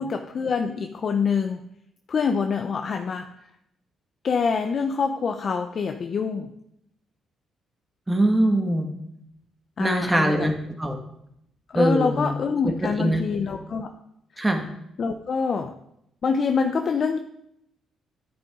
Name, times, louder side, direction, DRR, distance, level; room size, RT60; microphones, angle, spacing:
voice 1, 0.0-1.6 2.1-3.3 4.2-6.5 9.8-10.5 11.7-13.9 14.4-14.5 15.0-15.7 16.2-17.2, left 5 dB, 50° left, 5 dB, 0.7 m, -25 dB
voice 2, 8.1-8.9 9.8-11.0 11.7-12.3 12.6-13.2 14.4-14.7, right 1 dB, 15° right, 3 dB, 1.8 m, -22 dB
9.7 x 9.3 x 3.8 m, 0.77 s
cardioid pair, 90°, 0 cm